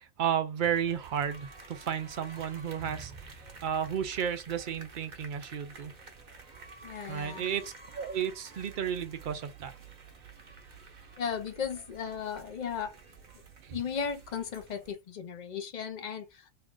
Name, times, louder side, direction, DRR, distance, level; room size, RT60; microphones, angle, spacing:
voice 1, 0.0-3.4 3.6-5.9 7.1-9.7 13.6-13.8, right 8 dB, 75° right, 0.4 m, -33 dB
sound 1, 0.6-14.9, right 4 dB, 40° right, 0.7 m, -50 dB
voice 2, 6.8-7.5 11.2-13.0 13.7-16.5, left 7 dB, 90° left, 0.3 m, -36 dB
3.3 x 2.4 x 3.6 m
omnidirectional pair, 1.4 m